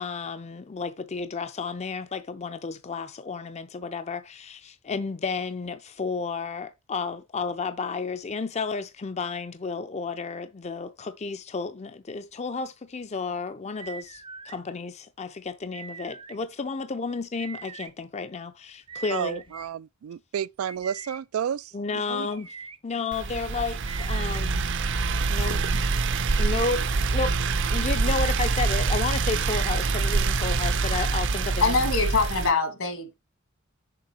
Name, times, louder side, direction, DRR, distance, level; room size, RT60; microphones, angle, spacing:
voice 1, 0.0-19.4 21.7-22.6 22.8-24.6 25.3-25.6 26.4-26.8 27.1-27.3 27.7-31.8, left 4 dB, 30° left, 0.5 m, -32 dB
sound 1, 13.8-14.6 15.7-16.4 17.4-17.9 18.9-19.7 20.6-21.2 22.2-22.8 23.8-24.4, right 5 dB, 25° right, 0.6 m, -42 dB
voice 2, 19.1-22.3, right 9 dB, 90° right, 0.3 m, -31 dB
sound 2, 23.1-32.5, right 4 dB, 60° right, 0.7 m, -25 dB
voice 3, 31.6-33.1, left 4 dB, 75° left, 2.0 m, -24 dB
6.8 x 3.8 x 6.1 m
head